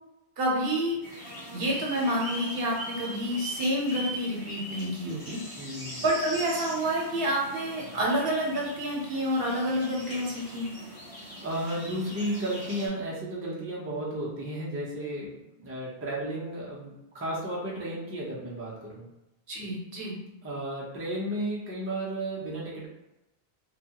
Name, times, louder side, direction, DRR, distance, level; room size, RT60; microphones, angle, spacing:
voice 1, 0.4-1.0 1.5-5.4 6.0-10.7 19.5-20.2, equal, 70° right, -2 dB, 0.9 m, -28 dB
sound 1, 1.0-12.9, equal, 20° left, 0.9 m, -41 dB
voice 2, 5.6-6.0 11.4-19.1 20.4-22.9, right 1 dB, 15° right, -5 dB, 0.4 m, -33 dB
2.3 x 2.2 x 2.8 m, 0.93 s
omnidirectional pair, 1.0 m